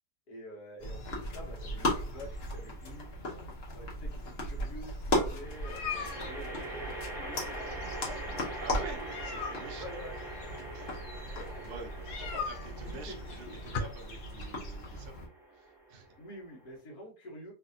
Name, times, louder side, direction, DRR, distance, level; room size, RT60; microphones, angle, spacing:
voice 1, 0.3-3.4 3.7-10.2 10.8-11.6 12.2-12.5 12.7-13.2 16.2-17.5, equal, 65° left, -2 dB, 1.4 m, -48 dB
sound 1, 0.8-15.3, left 1 dB, 45° left, 0.9 m, -37 dB
sound 2, 2.3-2.9 5.4-16.8, right 2 dB, 5° right, 0.6 m, -44 dB
sound 3, 4.9-13.8, left 5 dB, 85° left, 1.3 m, -43 dB
voice 2, 5.4-6.0 8.6-10.0 10.6-11.0 11.7-16.2, right 4 dB, 60° right, 2 dB, 0.6 m, -48 dB
3.3 x 2.5 x 2.6 m, 0.36 s
omnidirectional pair, 1.8 m